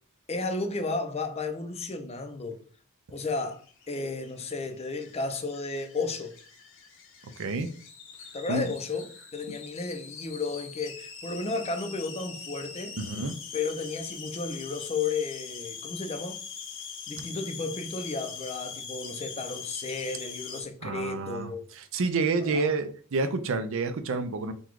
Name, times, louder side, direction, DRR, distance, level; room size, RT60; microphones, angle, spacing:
voice 1, 0.3-2.6 3.1-6.4 8.3-13.0 13.5-16.4 17.1-21.6 22.4-22.7, left 3 dB, 30° left, 0.5 m, -33 dB
sound 1, 3.3-20.6, left 6 dB, 60° left, 0.8 m, -42 dB
voice 2, 7.4-7.7 8.5-8.7 13.0-13.4 17.2-17.3 20.8-21.5 21.8-24.5, right 3 dB, 60° right, 0.5 m, -29 dB
3.9 x 2.3 x 4.6 m
head